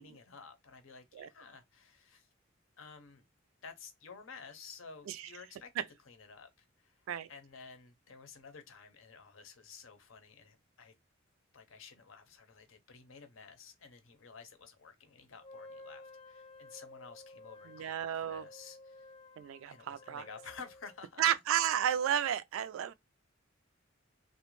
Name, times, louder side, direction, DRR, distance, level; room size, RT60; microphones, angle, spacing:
voice 1, 0.0-2.3 2.8-3.2 3.6-7.0 7.3-10.9 11.5-19.1 19.7-21.2, left 5 dB, 90° left, 0.7 m, -52 dB
Wind instrument woodwind instrument, 15.4-21.0, left 2 dB, 30° left, 0.4 m, -54 dB
voice 2, 17.7-18.5 19.4-20.2 21.2-22.9, right 10 dB, 90° right, 0.3 m, -32 dB
2.5 x 2.1 x 3.0 m
head